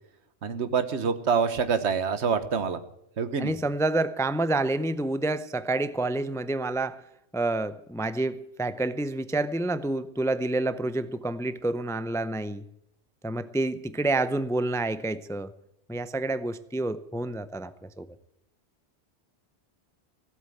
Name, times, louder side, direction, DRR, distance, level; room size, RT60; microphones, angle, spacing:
voice 1, 0.4-2.8 3.2-3.5, right 6 dB, 90° right, 12 dB, 1.4 m, -26 dB
voice 2, 3.4-7.0 7.3-12.6 13.2-15.5 15.9-18.1, right 2 dB, 5° left, 14 dB, 0.4 m, -28 dB
16.5 x 8.1 x 9.1 m, 0.82 s
omnidirectional pair, 1.1 m